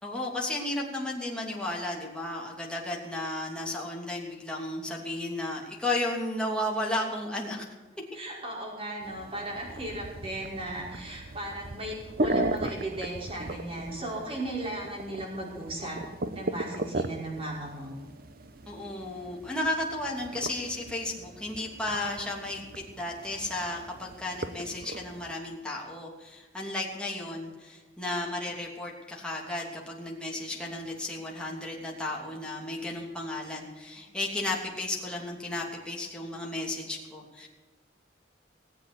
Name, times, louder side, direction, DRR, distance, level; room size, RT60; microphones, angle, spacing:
voice 1, 0.0-7.7 18.7-37.5, left 1 dB, 5° left, -2 dB, 2.9 m, -34 dB
voice 2, 8.1-16.0 16.3-17.9, right 1 dB, 30° right, -3 dB, 5.6 m, -36 dB
sound 1, 9.0-25.3, right 2 dB, 55° right, 0.9 m, -37 dB
19.0 x 8.1 x 8.3 m, 1.2 s
head